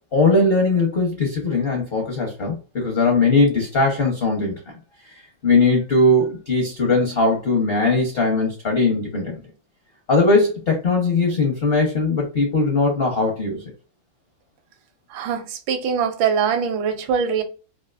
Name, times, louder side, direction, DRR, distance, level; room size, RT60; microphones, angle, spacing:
voice 1, 0.1-4.5 5.1-9.4 10.1-13.7, left 3 dB, 55° left, 0.6 m, -19 dB
voice 2, 15.1-17.4, right 7 dB, 75° right, 1.4 m, -22 dB
3.6 x 2.5 x 2.4 m
omnidirectional pair, 2.3 m